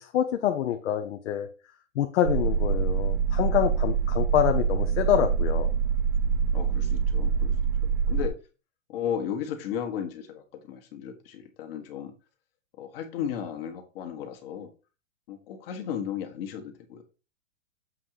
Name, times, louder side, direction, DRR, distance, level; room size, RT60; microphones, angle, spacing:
voice 1, 0.0-1.5 1.9-5.7, left 11 dB, 60° left, 5 dB, 0.9 m, -26 dB
sound 1, 2.2-8.3, right 6 dB, 30° right, 0.6 m, -25 dB
voice 2, 6.5-7.5 7.8-8.4 8.9-12.1 12.8-14.7 15.3-17.0, left 8 dB, 45° left, 5 dB, 1.7 m, -35 dB
7.7 x 3.8 x 4.7 m, 0.32 s
hypercardioid pair, 155°, 39 cm